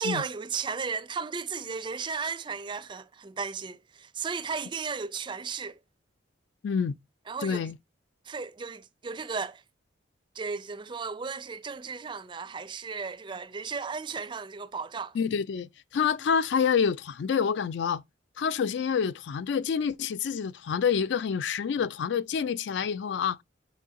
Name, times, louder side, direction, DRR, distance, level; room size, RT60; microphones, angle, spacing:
voice 1, 0.0-5.8 7.3-7.7 8.2-9.6 10.3-15.2, right 5 dB, 25° right, 0.4 m, -35 dB
voice 2, 6.6-7.0 7.4-7.8 15.1-18.0 18.4-23.4, left 6 dB, 65° left, 0.3 m, -27 dB
6.8 x 4.1 x 3.6 m
head